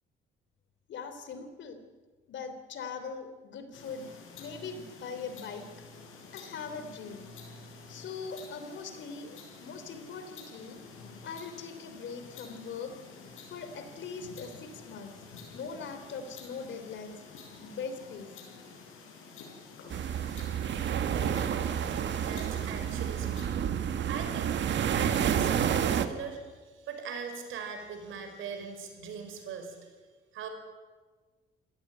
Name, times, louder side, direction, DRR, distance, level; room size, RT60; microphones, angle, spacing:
voice 1, 0.9-1.8 2.3-4.1 4.4-5.7 6.3-7.3 7.9-10.8 11.2-12.9 13.5-15.1 15.5-17.2 17.6-18.3, left 5 dB, 70° left, 8 dB, 3.3 m, -41 dB
sound 1, 3.7-23.5, left 4 dB, 90° left, 6.1 m, -50 dB
sound 2, 19.9-26.1, right 9 dB, 65° right, 1.6 m, -29 dB
voice 2, 22.2-23.7 24.1-24.5 24.9-29.9 30.3-30.5, right 6 dB, 85° right, 6 dB, 5.1 m, -40 dB
27.0 x 17.0 x 8.8 m, 1.4 s
cardioid pair, 90°, 20 cm